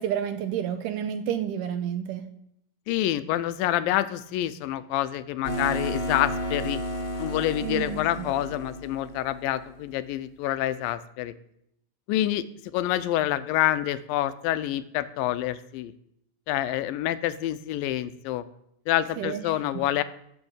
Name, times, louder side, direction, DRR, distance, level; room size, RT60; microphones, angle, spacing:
voice 1, 0.0-2.3 7.6-8.3 19.2-19.9, right 9 dB, 80° right, 9 dB, 2.1 m, -30 dB
voice 2, 2.9-6.8 7.2-11.3 12.1-12.4 12.7-15.9 16.5-18.4 18.9-20.0, left 13 dB, 80° left, 14 dB, 2.3 m, -27 dB
sound 1, 5.4-9.8, equal, 25° left, 1.4 m, -32 dB
13.5 x 6.3 x 8.0 m, 0.77 s
omnidirectional pair, 4.1 m